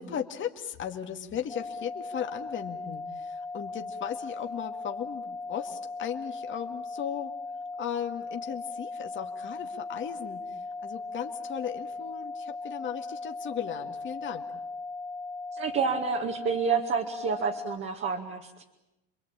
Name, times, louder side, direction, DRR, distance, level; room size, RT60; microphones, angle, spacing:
voice 1, 0.0-7.3 7.8-14.5, left 9 dB, 40° left, 4 dB, 2.2 m, -36 dB
sound 1, 1.5-17.8, left 3 dB, 5° left, 1.2 m, -38 dB
voice 2, 15.5-18.5, right 5 dB, 40° right, 1 dB, 2.3 m, -29 dB
29.0 x 23.0 x 8.9 m, 0.93 s
cardioid pair, 135°, 32 cm